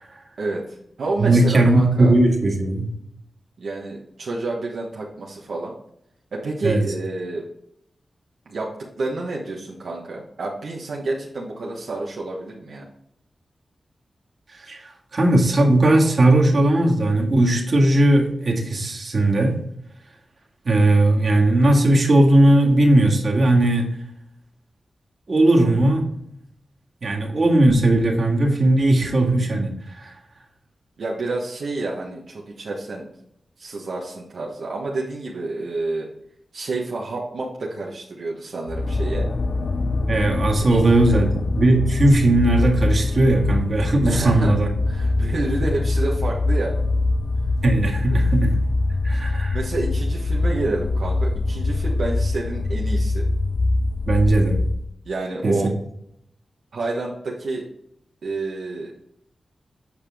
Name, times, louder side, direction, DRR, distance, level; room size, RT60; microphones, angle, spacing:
voice 1, 0.4-2.1 3.6-5.7 6.3-7.5 8.4-12.9 31.0-33.0 33.6-36.1 36.5-39.3 40.6-40.8 41.1-41.2 44.1-44.5 44.9-46.8 48.1-48.2 49.5-53.3 55.0-55.7 56.7-57.6 58.2-59.0, right 2 dB, 80° right, -3 dB, 1.3 m, -29 dB
voice 2, 1.2-2.9 6.6-6.8 14.5-14.8 15.1-19.6 20.7-23.9 25.3-26.0 27.0-30.1 40.1-44.7 47.6-48.6 49.0-49.6 54.1-54.6 55.4-55.7, right 1 dB, 55° right, -1 dB, 1.9 m, -18 dB
sound 1, 38.7-54.9, left 2 dB, 60° left, 0.6 m, -23 dB
8.2 x 5.1 x 3.5 m, 0.73 s
wide cardioid pair, 75°, 0 cm